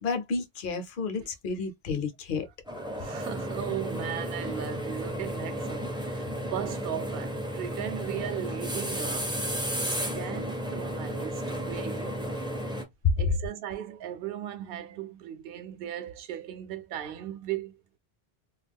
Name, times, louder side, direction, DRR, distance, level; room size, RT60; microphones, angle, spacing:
voice 1, 0.0-2.4, left 4 dB, 60° left, 0.7 m, -31 dB
sound 1, 2.7-12.8, equal, 5° right, 0.4 m, -33 dB
voice 2, 2.9-9.3 9.8-12.3 13.2-17.8, right 11 dB, 70° right, 0.7 m, -37 dB
2.3 x 2.2 x 3.4 m
omnidirectional pair, 1.1 m